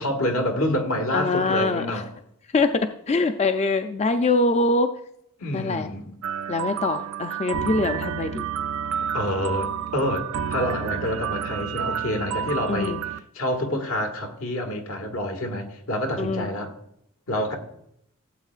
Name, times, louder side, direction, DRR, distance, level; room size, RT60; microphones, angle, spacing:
voice 1, 0.0-2.1 5.4-6.1 9.0-10.2 10.5-16.7 17.3-17.6, left 1 dB, 80° left, 1.8 m, -27 dB
voice 2, 1.1-2.0 2.5-4.9 5.5-5.9 6.5-8.5 12.7-13.0 16.2-16.5, left 3 dB, 30° left, 0.4 m, -23 dB
sound 1, 6.2-13.2, right 8 dB, 85° right, 0.4 m, -30 dB
16.5 x 7.9 x 2.4 m
head